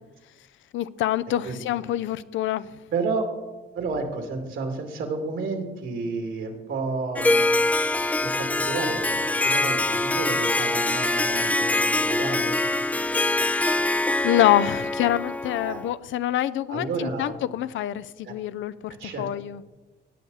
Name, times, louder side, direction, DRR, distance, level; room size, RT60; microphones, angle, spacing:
voice 1, 0.7-2.7 14.2-19.7, left 12 dB, 75° left, 15 dB, 0.5 m, -25 dB
voice 2, 2.9-3.3 3.7-7.5 8.2-12.6 14.7-14.8 15.7-15.8 16.7-17.3 18.2-18.3 19.0-19.3, right 4 dB, 75° right, 4 dB, 2.4 m, -31 dB
Harp, 7.2-15.9, left 2 dB, 5° left, 0.4 m, -24 dB
17.5 x 7.0 x 4.0 m, 1.2 s
cardioid pair, 90°, 20 cm